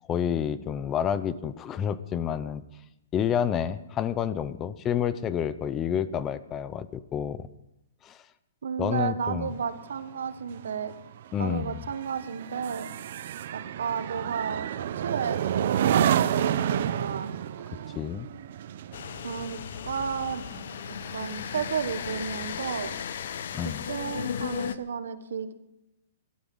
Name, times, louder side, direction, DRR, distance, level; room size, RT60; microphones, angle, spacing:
voice 1, 0.1-2.6 3.1-7.5 8.0-8.2 8.8-9.5 11.3-11.8 17.9-18.3 23.5-23.8, left 9 dB, 15° left, 15 dB, 0.6 m, -29 dB
voice 2, 8.6-10.9 11.4-12.9 13.5-14.7 15.0-17.3 19.2-20.4 21.1-22.9 23.6-25.5, right 6 dB, 85° right, 11 dB, 1.4 m, -33 dB
sound 1, 9.5-21.2 21.6-21.9, right 10 dB, 55° right, 0.7 m, -30 dB
sound 2, 18.9-24.8, left 8 dB, 65° left, 0.9 m, -35 dB
18.0 x 12.5 x 5.5 m, 0.88 s
hypercardioid pair, 165°, 0 cm